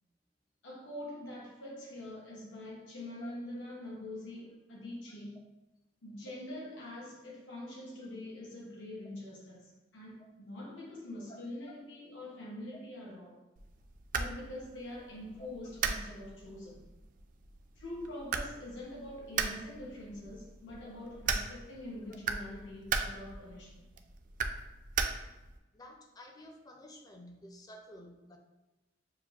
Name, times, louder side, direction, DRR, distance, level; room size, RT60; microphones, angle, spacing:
voice 1, 0.6-5.4 6.0-13.4 14.1-16.8 17.8-23.8, left 1 dB, 90° left, 0.9 m, -44 dB
sound 1, 13.6-25.6, right 5 dB, 45° right, 0.3 m, -38 dB
voice 2, 25.7-28.4, left 1 dB, 20° left, 0.4 m, -52 dB
6.6 x 2.5 x 2.4 m
head